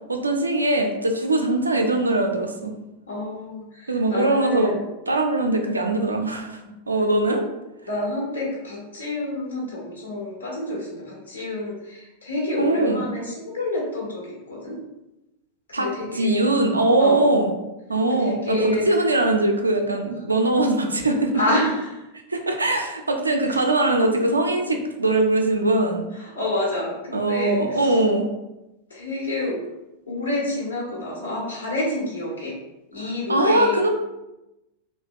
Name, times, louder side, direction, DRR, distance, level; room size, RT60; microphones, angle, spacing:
voice 1, 0.1-2.8 3.9-4.7 5.1-6.6 6.9-7.4 12.6-13.1 15.7-15.9 16.1-17.5 17.9-21.4 22.3-26.0 27.1-28.3 33.0-33.9, right 2 dB, 80° right, 4 dB, 0.3 m, -21 dB
voice 2, 3.1-4.9 6.6-6.8 7.8-14.8 15.8-16.4 17.0-17.3 18.1-18.8 21.3-22.0 23.4-23.7 26.1-28.0 28.9-29.6 30.1-32.6 32.9-33.9, left 2 dB, 75° left, -4 dB, 1.0 m, -28 dB
2.8 x 2.1 x 2.4 m, 0.96 s
figure-of-eight pair, 90°, 0 cm